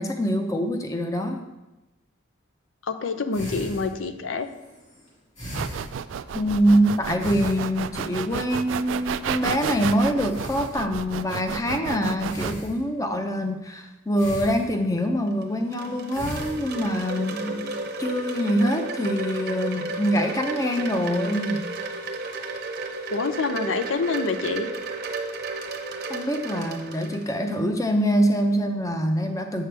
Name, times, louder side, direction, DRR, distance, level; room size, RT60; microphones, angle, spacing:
voice 1, 0.0-1.5 6.3-21.6 26.1-29.6, equal, 15° left, 6 dB, 0.6 m, -24 dB
voice 2, 2.9-4.5 23.1-24.7, left 4 dB, 85° left, 9 dB, 0.6 m, -27 dB
sound 1, 3.3-6.6 7.2-8.1 8.6-8.8 9.0-9.1 9.5-11.2 12.2-13.2 14.2-15.1 15.8-17.3 17.7-18.1, equal, 35° left, 2.5 m, -38 dB
sound 2, 5.5-12.5, right 8 dB, 80° right, 0.3 m, -31 dB
Wind chime, 15.3-27.5, right 3 dB, 55° right, 0.8 m, -33 dB
7.7 x 6.5 x 3.4 m, 1.0 s
head